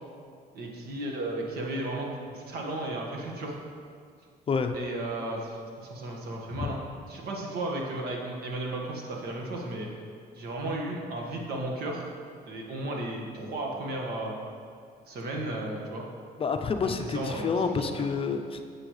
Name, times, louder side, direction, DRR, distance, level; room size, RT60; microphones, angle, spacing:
voice 1, 0.5-3.6 4.7-9.9 10.3-12.0 12.5-14.4 15.1-16.1 16.8-17.8, right 2 dB, 65° right, 0 dB, 1.7 m, -34 dB
voice 2, 16.4-18.6, left 5 dB, 35° left, 6 dB, 0.6 m, -29 dB
10.0 x 7.6 x 3.2 m, 2.3 s
cardioid pair, 110°, 17 cm